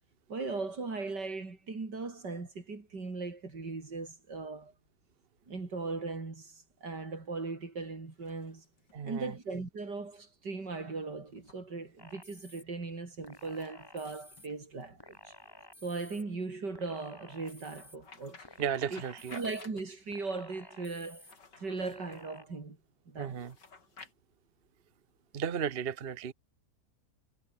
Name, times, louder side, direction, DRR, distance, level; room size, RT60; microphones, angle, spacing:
voice 1, 0.3-4.7 5.5-8.6 9.0-15.3 15.8-18.4 18.9-19.0 19.3-22.8 23.1-23.4, right 3 dB, 75° right, 4.7 m, -38 dB
sound 1, 8.0-9.0 11.3-11.6 13.3-15.2 17.3-20.2 21.1-22.3 23.3-24.1, left 4 dB, 85° left, 3.8 m, -56 dB
voice 2, 8.9-9.3 18.6-19.4 23.2-23.5 25.3-26.3, right 7 dB, 40° right, 1.0 m, -34 dB
sound 2, 12.0-12.6 13.2-14.5 15.0-16.2 16.7-18.0 18.4-19.6 20.1-21.3 21.8-22.4, left 1 dB, 15° left, 2.7 m, -54 dB
omnidirectional pair, 1.8 m